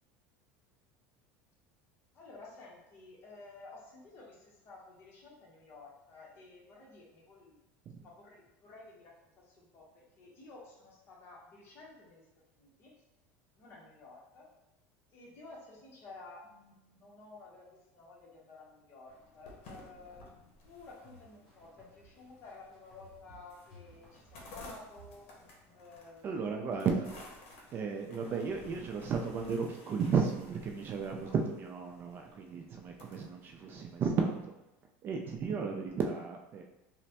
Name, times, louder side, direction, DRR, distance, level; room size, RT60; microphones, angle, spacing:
voice 1, 2.1-7.6 8.0-12.3 12.5-12.9 13.5-14.5 15.1-25.3 25.7-26.9 31.0-31.4, left 3 dB, 40° left, -3 dB, 0.9 m, -53 dB
sound 1, 19.1-34.4, left 1 dB, 75° left, 0.8 m, -56 dB
sound 2, 20.6-26.0, right 1 dB, ahead, 1.0 m, -59 dB
voice 2, 26.2-27.1 27.7-34.5 35.0-36.6, right 5 dB, 35° right, 2 dB, 0.3 m, -34 dB
3.0 x 2.1 x 2.8 m, 0.95 s
supercardioid pair, 130°, 6 cm